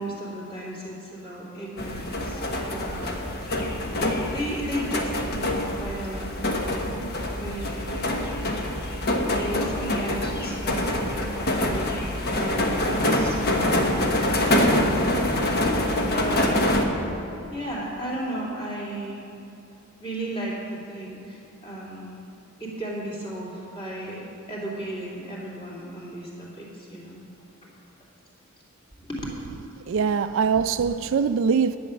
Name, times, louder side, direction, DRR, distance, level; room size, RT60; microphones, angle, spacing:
voice 1, 0.0-3.5 4.3-6.3 6.6-7.1 7.4-8.0 9.3-11.9 12.3-14.8 16.1-16.7 17.5-19.2 20.0-22.2 22.6-27.2 29.0-29.3, right 1 dB, 25° left, 2.8 m, -35 dB
sound 1, 1.8-16.8, left 1 dB, 50° left, 1.1 m, -25 dB
voice 2, 29.9-31.8, right 6 dB, 60° right, 0.3 m, -22 dB
11.0 x 8.6 x 6.3 m
head